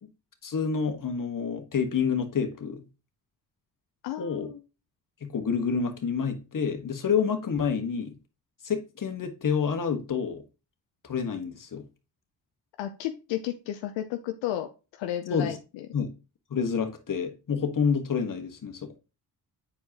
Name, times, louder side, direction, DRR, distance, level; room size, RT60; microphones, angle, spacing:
voice 1, 0.4-2.8 4.2-4.5 5.2-8.1 8.6-10.4 11.0-11.8 15.3-15.6 15.9-16.1 16.5-19.0, left 6 dB, 45° left, 1.5 m, -28 dB
voice 2, 4.0-4.6 12.8-15.9, left 12 dB, 85° left, 0.7 m, -33 dB
8.4 x 4.7 x 2.9 m
supercardioid pair, 55°, 44 cm